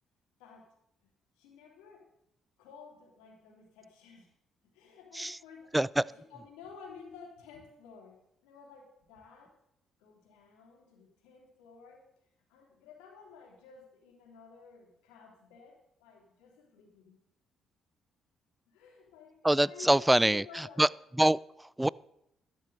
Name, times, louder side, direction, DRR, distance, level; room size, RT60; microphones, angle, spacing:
voice 1, 1.4-2.1 2.6-4.3 4.7-9.6 10.0-12.0 12.5-17.2 18.7-20.9, left 5 dB, 85° left, -1 dB, 3.0 m, -53 dB
voice 2, 19.4-20.9 21.2-21.9, right 1 dB, 10° right, 23 dB, 0.3 m, -25 dB
12.5 x 12.0 x 3.9 m, 0.80 s
hypercardioid pair, 55°, 0 cm